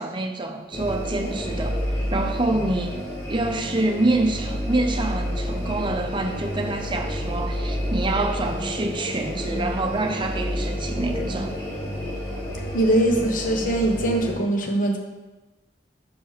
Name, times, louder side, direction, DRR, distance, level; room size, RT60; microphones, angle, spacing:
voice 1, 0.0-1.8 2.1-3.0 3.3-11.5, right 2 dB, 25° right, 5 dB, 0.7 m, -26 dB
sound 1, 0.7-14.3, equal, 25° left, 2.3 m, -29 dB
voice 2, 12.7-15.0, right 1 dB, 50° left, 3 dB, 1.1 m, -22 dB
6.5 x 5.3 x 5.0 m, 1.1 s
head